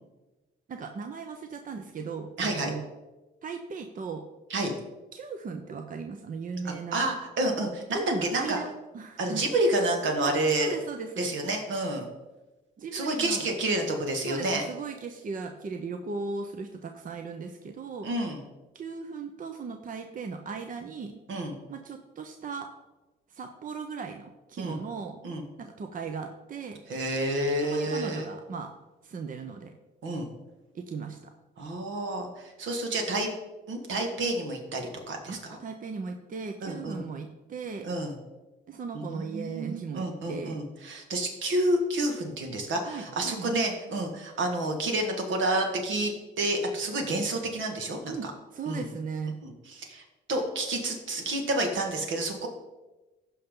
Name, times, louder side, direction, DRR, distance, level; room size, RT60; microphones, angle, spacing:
voice 1, 0.7-2.8 3.4-4.3 5.1-7.1 7.9-8.7 8.9-9.4 10.2-11.3 12.8-13.4 14.2-18.1 18.7-21.2 21.7-22.7 23.3-25.2 25.6-26.8 27.7-28.7 29.0-29.7 30.7-31.3 35.3-37.9 38.7-40.6 42.9-43.5 48.1-48.3 48.5-49.3, right 5 dB, 45° right, 5 dB, 0.8 m, -37 dB
voice 2, 2.4-2.7 4.5-4.7 6.6-8.6 9.2-10.7 11.2-12.1 12.9-14.6 18.0-18.4 21.3-21.6 24.6-24.8 25.2-25.4 26.9-28.3 30.0-30.3 31.6-33.3 33.7-35.6 36.6-37.0 37.8-38.2 38.9-48.3 48.7-48.8 49.4-50.0 50.3-52.5, right 1 dB, 75° right, 3 dB, 1.9 m, -29 dB
15.0 x 5.6 x 3.8 m, 1.1 s
cardioid pair, 90°, 20 cm